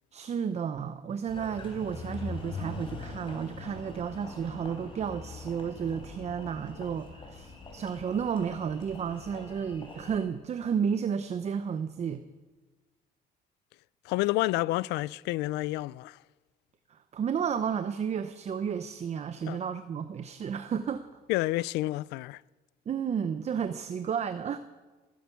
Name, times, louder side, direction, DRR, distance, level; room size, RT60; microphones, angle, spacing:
voice 1, 0.1-12.2 16.9-21.1 22.9-24.6, right 7 dB, 40° right, 0.8 m, -32 dB
Engine, 1.3-10.2, left 3 dB, 30° left, 4.0 m, -43 dB
voice 2, 14.1-16.2 19.5-19.6 21.3-22.4, left 19 dB, 90° left, 0.4 m, -29 dB
20.0 x 10.5 x 7.0 m
cardioid pair, 110°, 17 cm